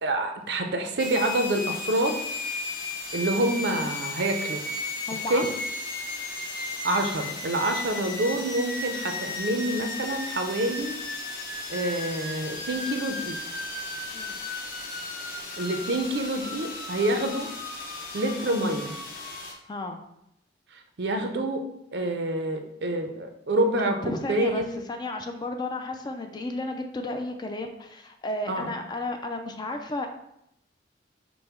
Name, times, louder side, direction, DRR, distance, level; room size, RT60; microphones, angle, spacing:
voice 1, 0.0-2.2 3.1-4.6 5.3-5.5 6.8-11.0 11.7-13.4 15.6-17.5 18.1-18.9 20.7-21.6 21.9-24.6 28.5-28.7, right 1 dB, 60° right, 5 dB, 0.6 m, -27 dB
sound 1, 1.0-19.5, left 2 dB, 45° left, 0.7 m, -35 dB
voice 2, 5.1-5.5 14.1-14.4 19.7-20.0 24.0-30.1, left 2 dB, 25° left, 5 dB, 0.3 m, -33 dB
5.3 x 2.1 x 4.3 m, 0.79 s
head